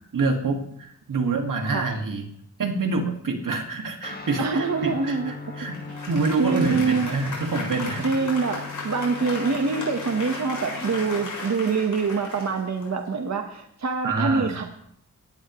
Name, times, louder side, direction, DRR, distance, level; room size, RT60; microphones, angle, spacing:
voice 1, 0.1-2.3 2.6-5.8 6.1-8.1 8.5-8.6 14.0-14.6, right 3 dB, 85° right, 3 dB, 2.1 m, -26 dB
Guitar, 4.0-11.7, left 5 dB, 30° left, 1.8 m, -40 dB
voice 2, 4.4-5.3 6.4-7.1 8.0-14.6, right 4 dB, 60° right, 4 dB, 1.3 m, -25 dB
Applause, 5.7-13.3, left 3 dB, 70° left, 7.1 m, -35 dB
18.0 x 15.5 x 3.2 m, 0.69 s
wide cardioid pair, 105°, 31 cm